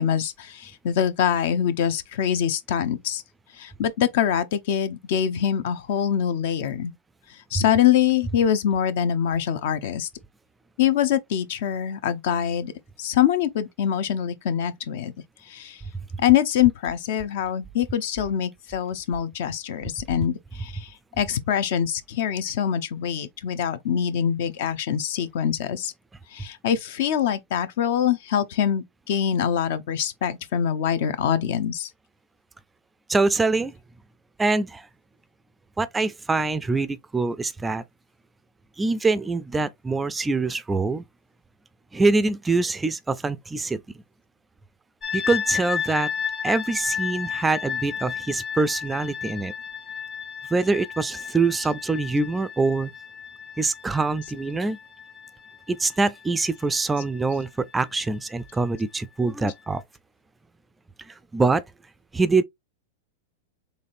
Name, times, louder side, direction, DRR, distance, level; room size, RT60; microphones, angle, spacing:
voice 1, 0.0-3.2 3.6-6.9 7.5-10.1 10.8-12.7 13.0-15.1 15.5-15.8 16.2-20.9 21.2-25.9 26.3-31.9, left 9 dB, 65° left, 0.6 m, -24 dB
voice 2, 33.1-33.7 34.4-34.9 35.8-37.8 38.8-41.0 41.9-43.8 45.1-46.1 46.4-49.5 50.5-52.9 53.6-54.8 55.7-59.8 61.1-61.6 62.1-62.4, right 3 dB, 10° right, 0.3 m, -24 dB
sound 1, 45.0-57.9, left 7 dB, 25° left, 0.8 m, -33 dB
4.0 x 3.1 x 2.5 m
hypercardioid pair, 120°, 0 cm